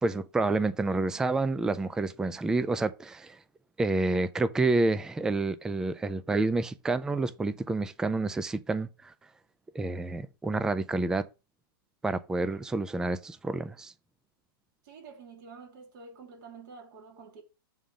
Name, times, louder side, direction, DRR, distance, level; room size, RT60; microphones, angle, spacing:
voice 1, 0.0-3.4 3.8-9.1 9.7-11.3 12.0-13.9, right 3 dB, 5° right, 0.3 m, -29 dB
voice 2, 14.8-17.4, right 4 dB, 50° right, 2.9 m, -48 dB
7.1 x 3.8 x 6.4 m
hypercardioid pair, 140°, 13 cm